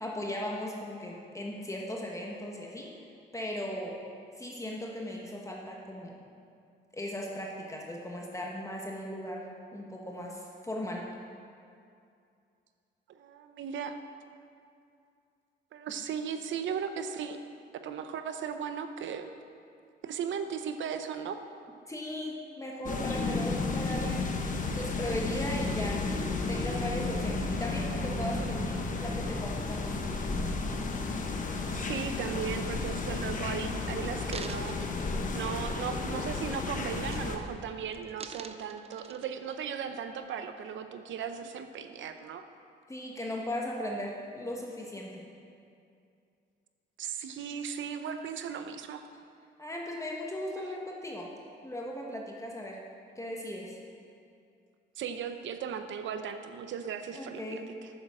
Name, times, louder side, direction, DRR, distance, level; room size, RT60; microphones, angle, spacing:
voice 1, 0.0-2.9 3.3-4.0 4.4-6.2 6.9-11.1 21.9-24.3 24.7-26.1 26.5-29.9 42.9-45.2 49.6-51.3 51.6-52.8 53.1-53.8 57.1-57.7, left 1 dB, 15° left, -1 dB, 1.3 m, -37 dB
voice 2, 13.2-13.9 15.7-17.4 17.7-19.3 20.0-21.4 31.7-34.8 35.3-42.4 47.0-49.0 55.0-57.9, right 7 dB, 70° right, 8 dB, 0.8 m, -37 dB
sound 1, 22.8-37.4, left 3 dB, 40° left, 1.1 m, -32 dB
sound 2, 34.3-36.2 36.5-36.8 37.1-37.6 37.9-39.6 40.2-40.3, right 5 dB, 30° right, 0.5 m, -47 dB
9.2 x 7.3 x 6.2 m, 2.5 s
cardioid pair, 90°, 20 cm